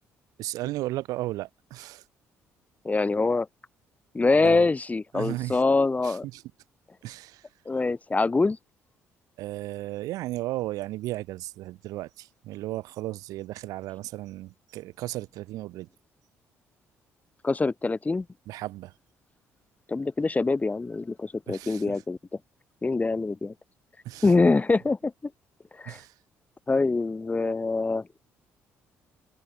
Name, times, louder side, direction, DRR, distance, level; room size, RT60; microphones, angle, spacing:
voice 1, 0.4-2.0 4.4-4.7 5.1-5.6 6.0-6.4 7.0-7.4 9.4-15.9 18.5-18.9 21.5-22.0 24.0-24.3 25.8-26.1, right 17 dB, 80° right, 4.6 m, -35 dB
voice 2, 2.8-3.5 4.1-6.2 7.6-8.6 17.4-18.2 19.9-22.2 22.8-23.5 24.2-25.1 25.8-26.0 26.7-28.0, left 3 dB, 25° left, 1.6 m, -24 dB
supercardioid pair, 65°, 6 cm